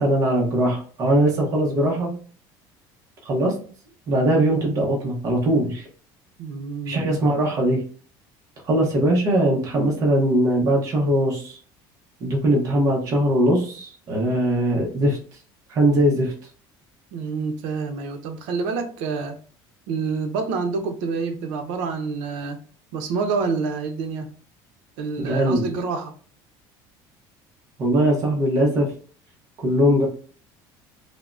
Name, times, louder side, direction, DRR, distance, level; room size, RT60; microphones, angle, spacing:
voice 1, 0.0-2.1 3.3-3.5 4.1-5.9 6.9-7.8 8.7-11.6 12.2-15.2 15.7-16.3 25.2-25.6 27.8-28.9 29.6-30.1, right 1 dB, 35° right, -1 dB, 0.7 m, -20 dB
voice 2, 6.4-7.0 12.5-12.6 17.1-19.4 19.9-22.6 22.9-24.3 25.0-26.1, right 4 dB, 85° right, 6 dB, 0.5 m, -27 dB
3.5 x 2.0 x 2.4 m, 0.43 s
cardioid pair, 160°, 9 cm